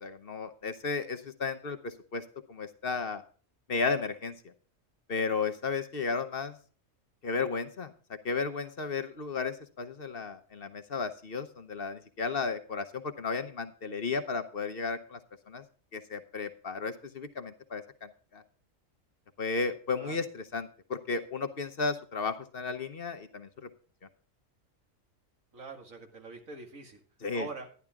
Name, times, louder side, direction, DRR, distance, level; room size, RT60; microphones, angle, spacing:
voice 1, 0.0-2.2 2.5-3.2 3.7-4.3 5.1-6.5 7.2-7.9 8.2-15.2 15.5-15.6 15.9-18.4 19.4-23.7 27.2-27.5, left 4 dB, 50° left, 9 dB, 1.0 m, -34 dB
voice 2, 25.5-27.0 27.3-27.7, right 3 dB, 80° right, 3 dB, 2.5 m, -43 dB
11.5 x 11.0 x 3.5 m, 0.40 s
omnidirectional pair, 1.4 m